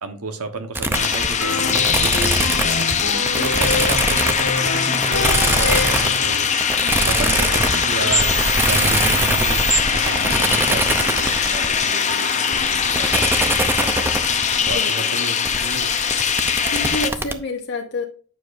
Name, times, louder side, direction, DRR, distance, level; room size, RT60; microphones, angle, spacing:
voice 1, 0.0-2.9 3.3-6.5 7.0-8.3 8.7-9.6 9.9-14.3 14.6-15.9, right 3 dB, 80° right, 7 dB, 1.2 m, -32 dB
sound 1, 0.7-17.3, right 2 dB, 10° right, 0.6 m, -23 dB
sound 2, 0.9-17.1, left 7 dB, 30° left, 0.7 m, -21 dB
sound 3, 1.4-4.0 4.4-6.3, left 3 dB, 80° left, 1.6 m, -27 dB
voice 2, 6.8-7.2 14.6-15.2 16.3-18.0, left 2 dB, 50° left, 0 dB, 1.0 m, -29 dB
9.3 x 6.5 x 2.6 m, 0.42 s
head